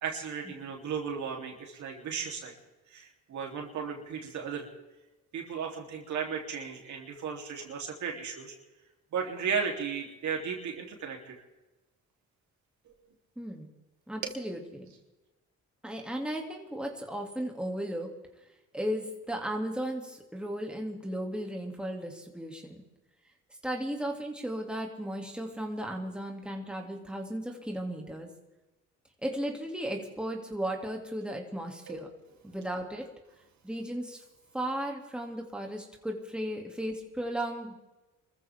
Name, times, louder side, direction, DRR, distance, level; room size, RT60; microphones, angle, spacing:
voice 1, 0.0-2.5 2.9-4.7 5.3-8.5 9.1-11.4 14.2-14.4 31.9-32.1, right 6 dB, 70° right, 0 dB, 3.6 m, -35 dB
voice 2, 13.4-13.7 14.1-14.9 15.8-18.1 18.7-22.8 23.6-28.3 29.2-32.1 32.4-33.1 33.6-34.2 34.5-37.7, right 1 dB, 5° right, 1 dB, 2.8 m, -35 dB
25.5 x 14.5 x 3.7 m, 1.1 s
cardioid pair, 90°, 30 cm